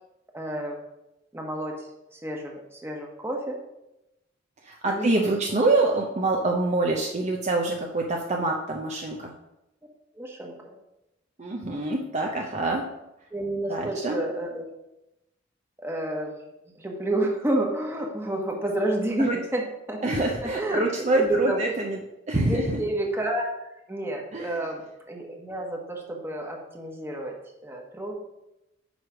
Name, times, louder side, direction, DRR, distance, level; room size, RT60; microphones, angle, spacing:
voice 1, 0.3-0.8 1.3-1.7 2.2-3.6 4.9-5.3 10.2-10.5 13.3-14.7 15.8-16.3 16.8-20.0 20.6-20.8 21.1-21.6 22.5-23.5 23.9-24.8 25.1-27.3 27.6-28.1, right 1 dB, 15° right, 0 dB, 1.3 m, -29 dB
voice 2, 4.6-9.3 11.4-12.8 13.7-14.2 19.2-19.4 20.0-22.8 24.3-24.6, right 2 dB, 40° right, 1 dB, 0.6 m, -26 dB
9.1 x 3.2 x 5.9 m, 0.91 s
head